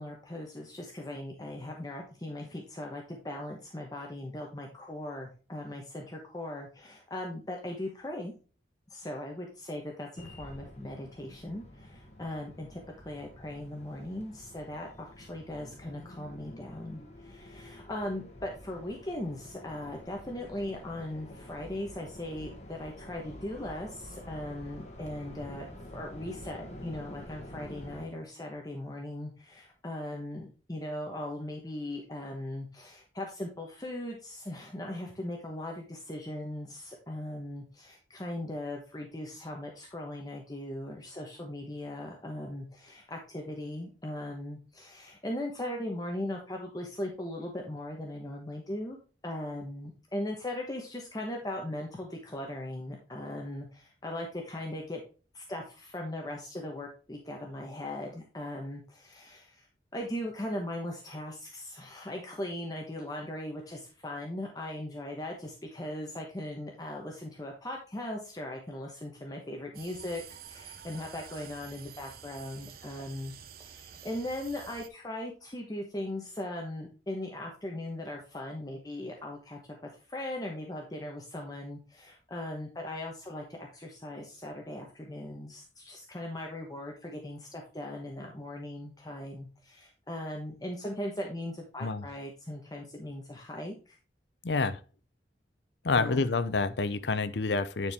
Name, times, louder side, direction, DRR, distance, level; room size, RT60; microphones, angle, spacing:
voice 1, 0.0-8.3 8.9-49.0 49.2-55.0 55.3-59.7 59.9-73.3 73.6-94.0 95.9-96.2, left 1 dB, 20° left, 1.1 m, -39 dB
sound 1, 10.2-28.1, left 1 dB, 40° left, 1.4 m, -48 dB
sound 2, 69.7-74.9, right 8 dB, 55° right, 0.7 m, -49 dB
voice 2, 94.4-94.8 95.8-97.9, left 3 dB, 75° left, 0.7 m, -28 dB
9.7 x 4.6 x 3.5 m
head